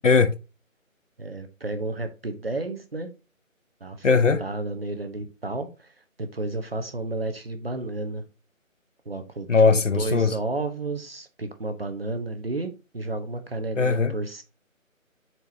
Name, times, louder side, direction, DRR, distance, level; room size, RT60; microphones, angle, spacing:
voice 1, 0.0-0.3 4.0-4.4 9.5-10.4 13.8-14.1, left 4 dB, 60° left, 0.7 m, -19 dB
voice 2, 1.2-3.1 3.8-8.2 9.0-9.5 9.9-14.4, right 2 dB, 45° right, 1.0 m, -32 dB
7.8 x 4.6 x 2.8 m
figure-of-eight pair, 165°, 41 cm